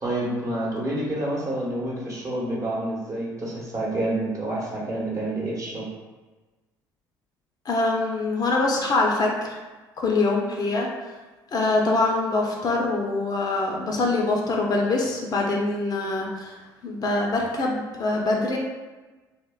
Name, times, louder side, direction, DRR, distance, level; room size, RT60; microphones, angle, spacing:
voice 1, 0.0-5.9, right 1 dB, 35° right, -4 dB, 0.9 m, -28 dB
voice 2, 7.6-9.6 10.0-10.9 11.5-18.6, left 2 dB, 45° left, 0 dB, 0.5 m, -24 dB
2.7 x 2.1 x 2.3 m, 1.2 s
hypercardioid pair, 65°, 9 cm